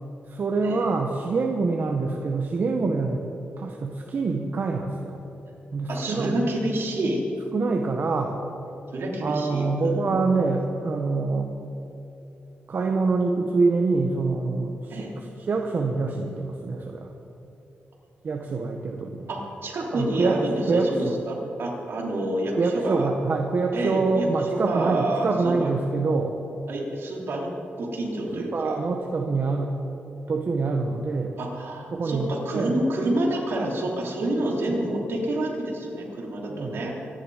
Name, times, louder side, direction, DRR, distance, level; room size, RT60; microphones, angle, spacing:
voice 1, 0.3-3.2 3.6-5.2 5.7-6.3 7.5-8.4 9.2-11.5 12.7-17.1 18.2-19.3 19.9-20.4 20.7-21.1 22.6-26.3 28.3-29.7 30.3-31.3 31.9-32.3 32.5-32.8 36.5-36.8, right 3 dB, 50° right, 2 dB, 1.1 m, -25 dB
voice 2, 5.9-7.2 8.9-10.3 14.9-15.1 19.3-23.1 23.7-25.7 26.7-27.5 27.8-28.8 31.4-37.1, right 1 dB, 70° right, -2 dB, 3.4 m, -28 dB
25.0 x 10.5 x 5.0 m, 3.0 s
wide cardioid pair, 125°, 4 cm